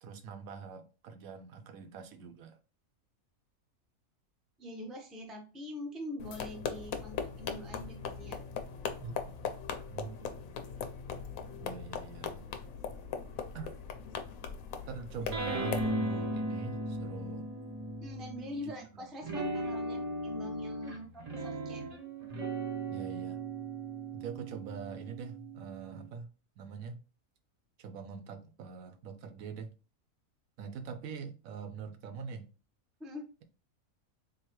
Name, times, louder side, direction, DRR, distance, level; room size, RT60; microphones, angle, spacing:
voice 1, 0.0-2.6 9.0-9.1 9.9-10.3 11.6-12.4 13.5-13.8 14.9-17.5 18.6-19.1 22.9-23.4 24.1-26.3 26.6-27.0 27.8-29.7 30.6-32.5, right 6 dB, 75° right, 1.0 m, -44 dB
voice 2, 4.6-8.4 18.0-21.8 33.0-33.3, left 1 dB, ahead, 0.4 m, -43 dB
sound 1, 6.2-15.9, left 6 dB, 80° left, 1.0 m, -40 dB
sound 2, 15.3-18.7 19.2-26.0, right 2 dB, 35° right, 0.7 m, -37 dB
3.8 x 2.8 x 2.9 m
omnidirectional pair, 1.5 m